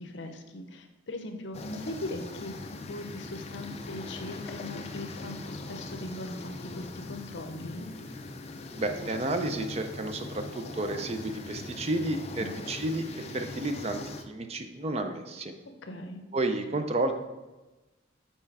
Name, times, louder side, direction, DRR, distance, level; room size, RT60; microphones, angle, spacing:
voice 1, 0.0-7.9 12.4-12.7 15.8-16.2, left 1 dB, 65° left, 6 dB, 0.7 m, -40 dB
sound 1, 1.5-14.2, left 2 dB, 35° left, 0.4 m, -41 dB
voice 2, 8.8-15.5 16.3-17.1, right 2 dB, 35° right, 7 dB, 0.5 m, -31 dB
5.5 x 4.3 x 4.7 m, 1.1 s
head